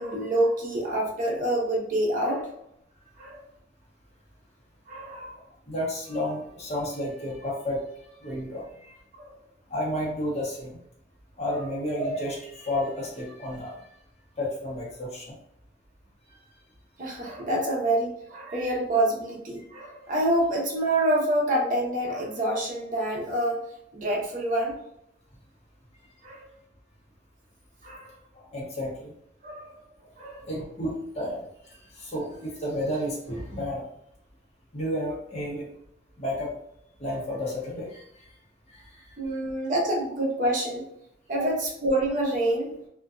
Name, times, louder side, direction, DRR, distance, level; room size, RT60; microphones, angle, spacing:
voice 1, 0.0-2.5 3.2-3.4 4.9-5.3 9.2-9.3 17.0-23.6 23.9-24.7 26.2-26.5 27.8-28.1 29.4-29.8 30.2-30.4 39.2-40.8 41.3-42.7, right 1 dB, 45° right, -2 dB, 0.7 m, -27 dB
voice 2, 5.7-7.8 8.2-9.0 9.7-10.8 11.4-13.8 14.4-15.3 18.5-18.6 28.3-29.1 30.4-31.4 31.9-33.8 34.7-35.7 36.2-36.5 37.0-38.3 38.7-39.0 39.3-39.4 40.0-40.1 41.4-41.5, left 1 dB, 35° left, -6 dB, 0.7 m, -31 dB
2.5 x 2.2 x 2.3 m, 0.75 s
head